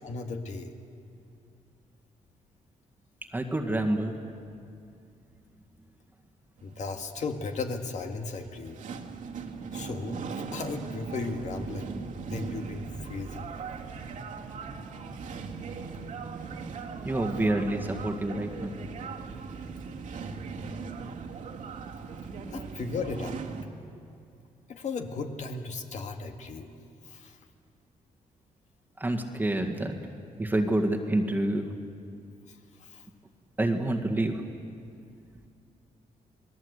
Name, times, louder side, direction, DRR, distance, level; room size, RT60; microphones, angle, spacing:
voice 1, 0.0-0.7 6.6-8.8 9.7-13.5 22.5-23.4 24.7-26.7 27.0-27.4 32.5-33.1, left 4 dB, 55° left, 4 dB, 2.0 m, -36 dB
voice 2, 3.3-4.2 17.0-18.8 22.3-22.8 29.0-30.0 30.4-31.8 33.6-34.4, right 1 dB, 15° right, 2 dB, 1.9 m, -28 dB
sound 1, 6.6-23.6, right 5 dB, 60° right, 2.3 m, -39 dB
29.0 x 20.0 x 8.2 m, 2.5 s
cardioid pair, 130°, 15 cm